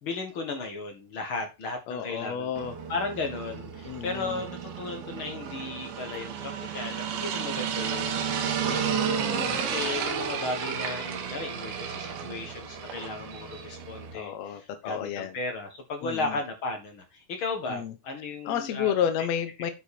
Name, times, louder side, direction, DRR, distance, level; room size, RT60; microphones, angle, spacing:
voice 1, 0.0-2.5 2.9-9.0 9.6-18.9, left 3 dB, 55° left, 4 dB, 1.4 m, -35 dB
voice 2, 1.9-2.8 3.8-4.4 8.6-9.6 14.1-15.3 16.0-16.4 17.7-17.9 18.4-19.7, left 9 dB, 80° left, 8 dB, 1.5 m, -31 dB
sound 1, 2.6-14.1, right 7 dB, 75° right, 3.3 m, -32 dB
10.5 x 4.8 x 4.3 m, 0.26 s
omnidirectional pair, 4.5 m